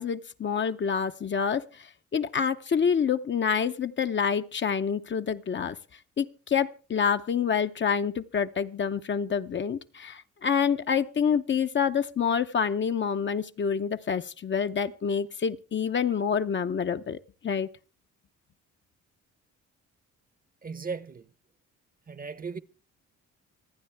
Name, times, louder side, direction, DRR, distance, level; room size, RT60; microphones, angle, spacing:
voice 1, 0.0-5.8 6.2-17.7, left 7 dB, 40° left, 0.7 m, -27 dB
voice 2, 20.6-21.3 22.1-22.6, right 5 dB, 30° right, 0.8 m, -36 dB
26.0 x 9.4 x 3.4 m
cardioid pair, 90°, 30 cm